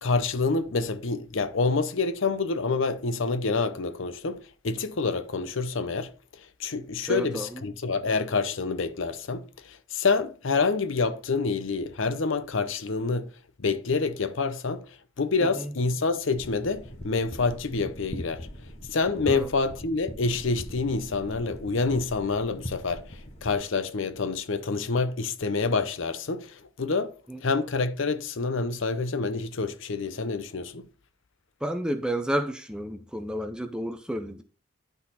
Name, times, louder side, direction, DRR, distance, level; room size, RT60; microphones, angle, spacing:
voice 1, 0.0-6.1 6.6-13.3 13.6-14.8 15.2-18.5 18.9-27.2 27.4-30.9, left 4 dB, 65° left, 0.7 m, -27 dB
voice 2, 7.1-7.6 15.6-15.7 19.3-19.5 27.3-27.4 31.6-34.4, right 1 dB, 5° right, 0.5 m, -31 dB
sound 1, 16.3-23.5, equal, 30° left, 1.2 m, -41 dB
11.5 x 4.0 x 4.2 m
head